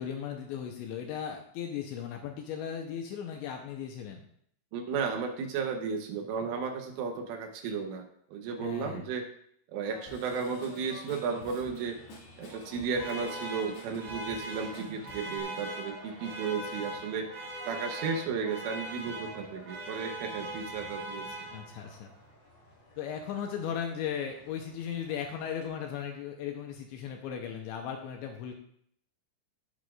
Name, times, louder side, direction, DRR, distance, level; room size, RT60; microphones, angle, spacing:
voice 1, 0.0-4.2 8.6-9.0 21.5-22.1 23.0-28.5, left 8 dB, 80° left, 3 dB, 2.9 m, -37 dB
voice 2, 4.7-9.3 9.7-12.0 12.4-17.3 17.7-21.4, right 5 dB, 80° right, 3 dB, 3.6 m, -34 dB
sound 1, 9.8-25.7, left 2 dB, 20° left, 4.4 m, -53 dB
Drum kit / Drum, 10.1-15.4, left 1 dB, 60° left, 4.2 m, -50 dB
sound 2, 13.0-22.0, right 1 dB, 45° right, 4.2 m, -41 dB
17.5 x 8.2 x 2.5 m, 0.67 s
omnidirectional pair, 5.7 m